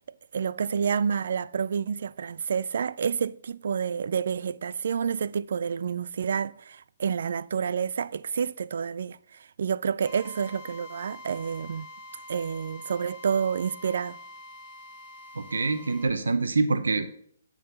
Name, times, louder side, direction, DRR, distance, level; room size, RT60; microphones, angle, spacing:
voice 1, 0.3-11.9 12.3-14.2, right 7 dB, 65° right, 0.3 m, -29 dB
Drill, 10.1-16.1, left 1 dB, 15° left, 2.4 m, -46 dB
voice 2, 15.3-17.1, right 3 dB, 90° right, 0.7 m, -25 dB
9.6 x 3.9 x 6.6 m
hypercardioid pair, 150°, 0 cm